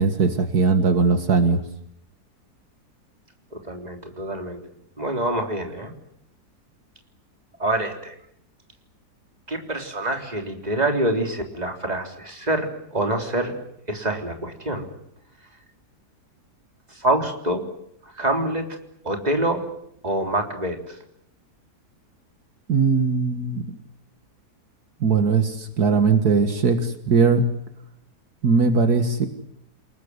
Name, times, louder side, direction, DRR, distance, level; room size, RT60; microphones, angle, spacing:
voice 1, 0.0-1.6 22.7-23.6 25.0-27.4 28.4-29.3, right 4 dB, 70° right, 8 dB, 2.3 m, -19 dB
voice 2, 3.6-4.6 5.0-5.9 7.6-8.1 9.5-13.6 13.9-14.9 17.0-17.6 18.2-18.7 19.0-19.7 20.0-21.0, right 1 dB, 25° right, 4 dB, 3.7 m, -26 dB
29.0 x 19.0 x 9.7 m, 0.74 s
omnidirectional pair, 1.7 m